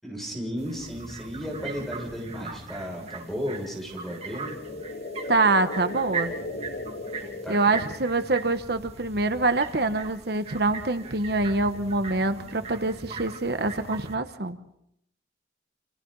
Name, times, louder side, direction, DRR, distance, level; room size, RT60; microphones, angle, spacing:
voice 1, 0.0-4.6 7.4-7.8, equal, ahead, 0 dB, 6.6 m, -34 dB
sound 1, 0.6-14.2, right 4 dB, 35° right, 2.3 m, -39 dB
sound 2, 3.9-8.2, left 2 dB, 80° left, 1.9 m, -37 dB
voice 2, 5.3-6.3 7.5-14.6, right 3 dB, 60° right, 9 dB, 1.2 m, -25 dB
29.5 x 27.5 x 4.1 m, 0.77 s
head